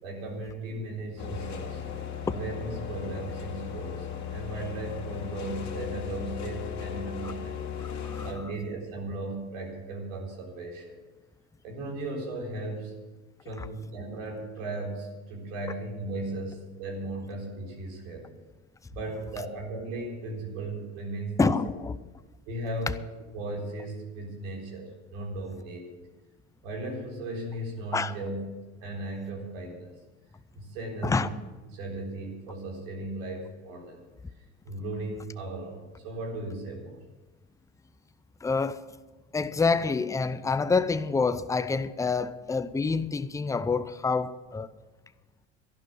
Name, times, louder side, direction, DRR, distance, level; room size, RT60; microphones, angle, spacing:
voice 1, 0.0-1.8 2.3-4.1 4.3-7.6 8.2-11.0 11.6-12.9 13.4-18.3 18.9-21.5 22.5-23.0 23.3-26.0 26.6-28.5 28.8-29.9 30.5-31.3 31.7-34.0 34.6-37.0, right 2 dB, 75° right, 4.0 m, -36 dB
sound 1, 1.2-8.3, left 8 dB, 45° left, 2.3 m, -36 dB
voice 2, 7.8-8.3 13.6-13.7 21.4-22.0 27.9-28.1 31.0-31.3 38.4-38.8 39.3-44.7, left 4 dB, 10° left, 0.6 m, -27 dB
12.5 x 11.5 x 6.1 m
hypercardioid pair, 80°, 38 cm